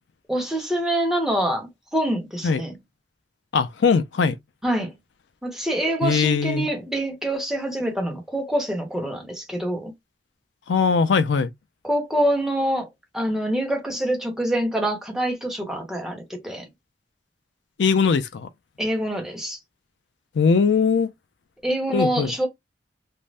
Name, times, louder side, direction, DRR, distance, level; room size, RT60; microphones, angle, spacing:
voice 1, 0.3-2.8 4.6-4.9 5.4-9.9 11.8-12.9 13.1-16.6 18.8-19.6 21.6-22.5, right 1 dB, 5° right, 0.9 m, -25 dB
voice 2, 3.5-4.4 6.0-6.7 10.7-11.5 17.8-18.5 20.3-21.1 21.9-22.3, left 5 dB, 85° left, 0.4 m, -20 dB
2.6 x 2.0 x 3.2 m
head